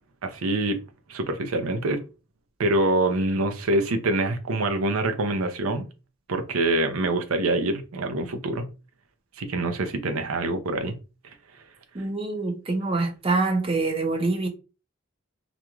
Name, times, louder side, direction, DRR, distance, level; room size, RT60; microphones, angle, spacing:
voice 1, 0.2-0.8 1.1-2.0 2.6-5.8 6.3-8.7 9.4-11.0, right 2 dB, 90° right, 0.5 m, -25 dB
voice 2, 11.9-14.5, right 3 dB, 25° right, 0.6 m, -25 dB
2.5 x 2.2 x 2.9 m
head